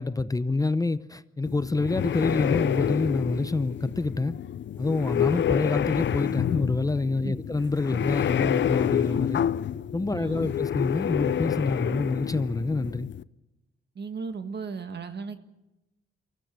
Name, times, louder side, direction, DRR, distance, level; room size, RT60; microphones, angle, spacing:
voice 1, 0.0-4.3 4.8-9.4 9.9-13.1, left 3 dB, 15° left, 0.7 m, -27 dB
sound 1, 1.5-13.2, left 10 dB, 60° left, 0.6 m, -28 dB
voice 2, 10.1-10.5 13.9-15.4, right 5 dB, 55° right, 1.6 m, -36 dB
24.0 x 15.5 x 7.5 m
cardioid pair, 85°, 21 cm